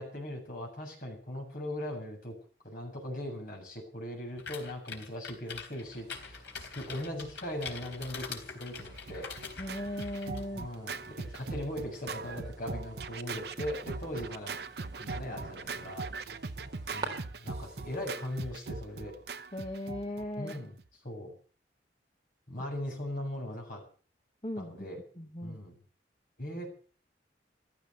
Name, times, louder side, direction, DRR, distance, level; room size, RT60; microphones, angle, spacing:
voice 1, 0.0-2.4 2.6-9.3 10.5-14.6 15.0-16.1 16.9-19.2 20.4-20.8 21.0-21.3 22.5-23.8 24.6-25.0 25.4-25.8 26.4-26.7, left 1 dB, 50° left, 0 dB, 7.6 m, -39 dB
sound 1, 4.4-10.4, left 5 dB, 85° left, 3.9 m, -44 dB
sound 2, 5.8-17.1, right 3 dB, 20° right, 3.9 m, -51 dB
Scratching (performance technique), 8.8-20.9, right 4 dB, 65° right, 0.8 m, -40 dB
voice 2, 9.6-10.7 19.5-20.6 24.4-24.7 25.2-25.6, left 1 dB, 30° left, 4 dB, 1.5 m, -37 dB
15.5 x 13.0 x 6.9 m, 0.41 s
head